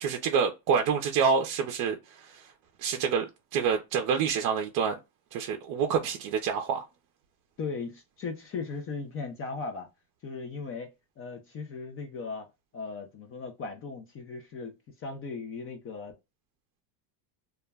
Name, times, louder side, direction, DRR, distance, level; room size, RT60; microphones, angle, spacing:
voice 1, 0.0-2.0 2.8-3.2 3.5-4.9 5.3-6.8, right 6 dB, 45° right, 0.5 m, -27 dB
voice 2, 7.6-9.9 10.2-10.9 11.2-12.5 12.7-16.2, left 4 dB, 30° left, 0.4 m, -37 dB
2.3 x 2.1 x 3.3 m
cardioid pair, 135°, 48 cm